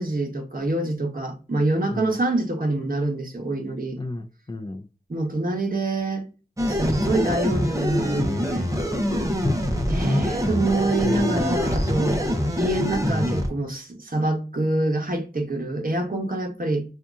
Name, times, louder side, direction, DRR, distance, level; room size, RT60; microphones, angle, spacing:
voice 1, 0.0-4.0 5.1-6.3 6.6-8.7 9.9-12.2 12.6-16.8, right 2 dB, 55° right, 1.0 m, -26 dB
voice 2, 1.9-2.2 4.0-4.9 9.4-10.0 10.4-10.6 11.0-11.5, left 2 dB, 25° left, 0.4 m, -32 dB
sound 1, 6.6-13.5, equal, 20° right, 0.8 m, -24 dB
2.8 x 2.4 x 3.6 m
wide cardioid pair, 55°, 17 cm